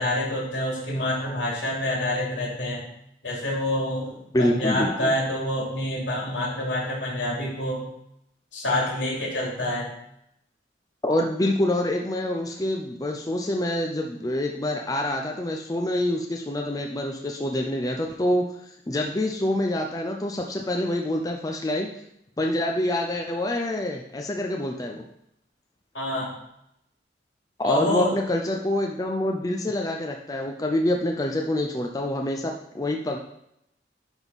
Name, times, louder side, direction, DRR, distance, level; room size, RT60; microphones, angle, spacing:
voice 1, 0.0-2.8 3.2-7.9 8.5-9.9 25.9-26.3 27.6-28.1, left 1 dB, 80° left, -4 dB, 2.9 m, -27 dB
voice 2, 4.3-5.1 11.0-21.9 22.4-25.1 27.6-33.2, left 1 dB, 20° left, 2 dB, 0.5 m, -26 dB
10.5 x 3.6 x 4.1 m, 0.78 s
head